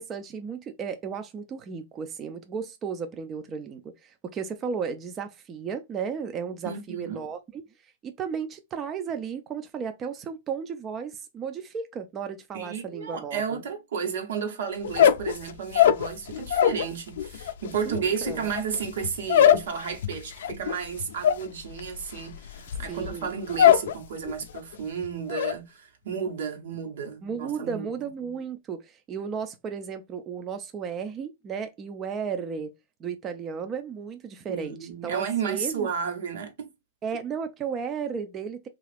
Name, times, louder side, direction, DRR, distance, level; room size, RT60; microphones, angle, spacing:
voice 1, 0.0-7.6 8.0-13.6 17.9-18.5 22.9-23.3 27.2-32.7 33.0-35.9 37.0-38.7, right 6 dB, 20° right, 0.3 m, -34 dB
voice 2, 6.6-7.2 12.5-27.9 34.5-36.7, right 6 dB, 80° right, 1.0 m, -32 dB
sound 1, 14.8-16.9 17.2-23.9 24.2-24.7 25.0-25.5, left 10 dB, 75° left, 0.3 m, -22 dB
2.8 x 2.4 x 3.2 m
supercardioid pair, 155°, 0 cm